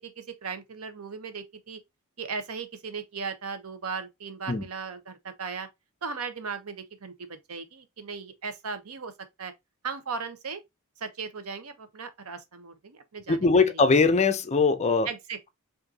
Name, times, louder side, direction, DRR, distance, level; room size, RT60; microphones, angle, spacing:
voice 1, 0.0-1.8 2.2-5.7 6.0-9.1 9.4-9.5 9.8-10.6 11.0-13.5 15.1-15.5, right 5 dB, 80° right, 0.8 m, -37 dB
voice 2, 13.3-15.1, left 4 dB, 30° left, 0.5 m, -21 dB
5.0 x 2.6 x 2.7 m
head